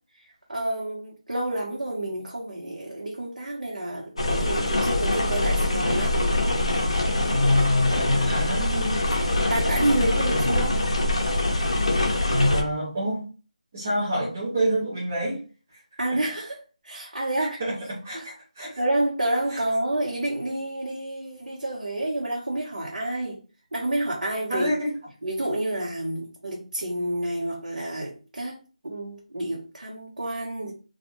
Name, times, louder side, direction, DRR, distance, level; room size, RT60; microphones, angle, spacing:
voice 1, 0.2-6.2 8.6-10.8 16.0-17.6 18.1-18.2 18.8-23.4 23.7-24.7 25.2-28.6 28.8-30.7, right 1 dB, 85° right, 0.9 m, -29 dB
sound 1, 4.2-12.6, left 1 dB, 45° left, 0.6 m, -24 dB
voice 2, 7.3-8.7 9.9-10.5 12.3-13.2 13.7-15.4 16.1-16.2 17.4-18.8 19.5-19.6 24.5-24.9, equal, 10° right, 0.4 m, -26 dB
2.3 x 2.1 x 3.0 m
figure-of-eight pair, 180°, 4 cm